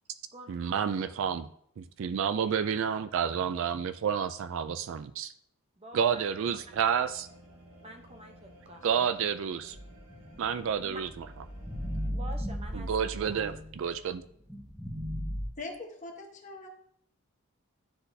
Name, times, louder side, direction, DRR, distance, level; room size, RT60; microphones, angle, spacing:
voice 1, 0.5-1.5 1.8-5.3 5.9-7.3 8.8-9.8 10.4-11.1 12.7-14.2, right 7 dB, 60° right, 12 dB, 0.3 m, -30 dB
voice 2, 5.8-6.2 7.8-9.1 10.8-11.0 12.1-13.6, right 1 dB, 25° right, 4 dB, 0.7 m, -48 dB
sound 1, 5.9-12.1, right 1 dB, 85° right, 1.2 m, -55 dB
sound 2, 9.7-14.0 14.5-15.5, equal, ahead, 1.3 m, -37 dB
voice 3, 15.6-16.7, left 3 dB, 35° left, 1 dB, 1.1 m, -41 dB
10.0 x 4.0 x 2.7 m, 0.67 s
head